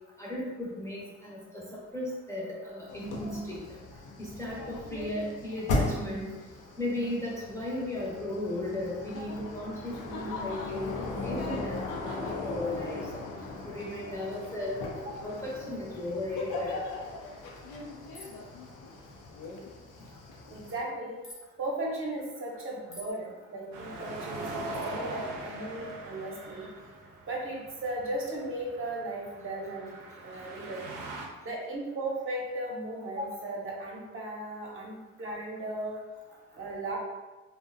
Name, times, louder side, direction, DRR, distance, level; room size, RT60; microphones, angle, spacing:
voice 1, 0.2-3.8 4.2-6.3 6.8-13.2 13.6-16.8, left 1 dB, 10° left, -6 dB, 0.6 m, -36 dB
sound 1, 2.9-20.8, left 2 dB, 85° left, 0.5 m, -38 dB
sound 2, 18.1-18.5 21.2-21.4 22.9-23.2 24.7-24.9, left 1 dB, 45° left, 0.8 m, -47 dB
voice 2, 20.5-21.2 21.6-26.7 27.3-30.8 31.4-36.0 36.5-37.0, right 1 dB, 45° right, -3 dB, 0.7 m, -36 dB
sound 3, 23.7-31.3, right 2 dB, 90° right, 0.5 m, -41 dB
2.5 x 2.1 x 2.5 m, 1.2 s
cardioid pair, 90°, 30 cm